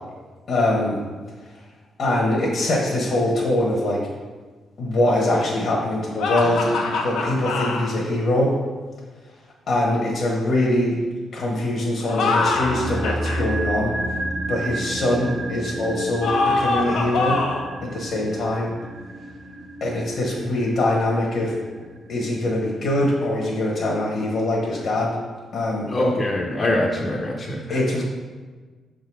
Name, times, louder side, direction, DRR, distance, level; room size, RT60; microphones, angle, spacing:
voice 1, 0.5-1.0 2.0-4.1 4.8-6.7 7.0-8.5 9.7-11.0 11.3-13.9 14.5-17.4 17.8-18.7 19.8-21.5 22.1-25.2 25.5-25.9 27.7-28.0, left 1 dB, 60° left, -3 dB, 1.2 m, -23 dB
sound 1, 6.2-7.9 12.0-13.4 16.2-17.7, left 3 dB, 90° left, 0.8 m, -24 dB
sound 2, 12.4-22.7 22.9-23.0, right 1 dB, 60° right, 1.0 m, -31 dB
voice 2, 25.9-28.0, left 1 dB, 30° left, -2 dB, 0.7 m, -24 dB
6.5 x 3.8 x 4.6 m, 1.4 s
cardioid pair, 125°, 0 cm